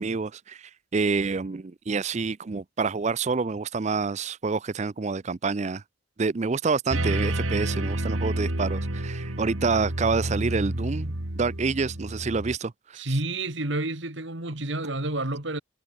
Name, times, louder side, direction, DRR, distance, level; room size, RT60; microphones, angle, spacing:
voice 1, 0.0-5.8 6.2-13.0, right 4 dB, 35° right, 0.4 m, -28 dB
sound 1, 6.9-12.6, right 1 dB, 75° right, 2.8 m, -29 dB
voice 2, 12.9-15.6, right 2 dB, 60° right, 2.6 m, -29 dB
head